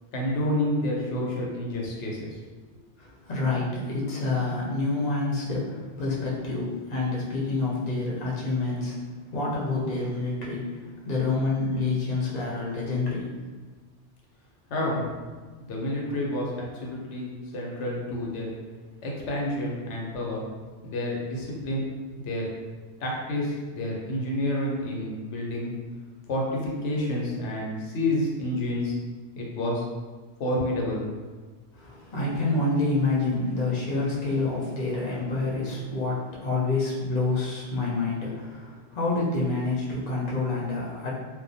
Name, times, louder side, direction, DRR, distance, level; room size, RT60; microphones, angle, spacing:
voice 1, 0.1-2.3 14.7-15.0 15.6-18.5 19.0-20.4 20.8-21.9 22.2-22.5 23.0-25.7 26.3-28.9 29.4-29.9 30.4-31.1, left 1 dB, 85° left, -2 dB, 0.9 m, -29 dB
voice 2, 3.0-9.0 9.3-13.3 31.7-41.1, left 3 dB, 50° left, -5 dB, 0.6 m, -28 dB
2.2 x 2.1 x 2.6 m, 1.4 s
omnidirectional pair, 1.2 m